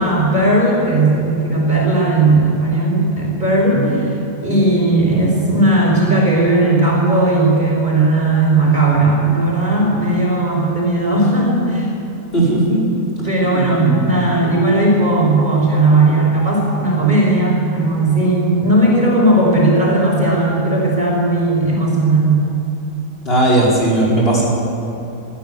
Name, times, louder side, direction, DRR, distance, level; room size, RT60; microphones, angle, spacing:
voice 1, 0.0-4.1 4.4-11.9 13.2-22.4, right 2 dB, 30° right, -3 dB, 5.7 m, -16 dB
voice 2, 12.3-12.8 13.5-14.1 23.2-24.5, right 2 dB, 40° left, -5 dB, 5.2 m, -16 dB
23.0 x 15.0 x 8.1 m, 2.9 s
omnidirectional pair, 1.6 m